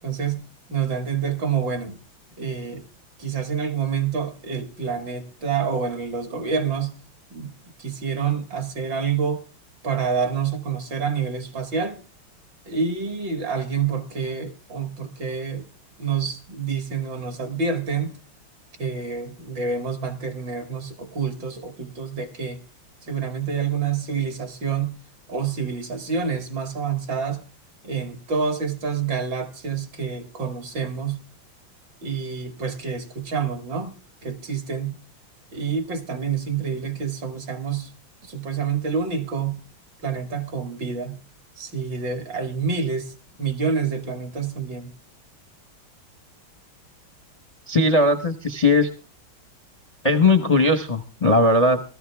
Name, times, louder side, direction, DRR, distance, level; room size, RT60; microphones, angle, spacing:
voice 1, 0.0-2.0 2.4-2.8 3.2-7.0 7.3-7.5 7.8-9.4 9.8-12.0 12.7-15.7 16.0-18.1 18.8-22.6 23.1-25.0 25.3-27.4 27.8-31.2 32.0-34.0 34.2-35.0 35.5-37.9 38.2-39.6 40.0-41.2 41.6-44.9, right 6 dB, 60° right, 7 dB, 2.7 m, -27 dB
voice 2, 47.7-48.9 50.0-51.8, left 2 dB, 35° left, 8 dB, 0.6 m, -18 dB
18.0 x 14.0 x 3.5 m, 0.34 s
omnidirectional pair, 2.3 m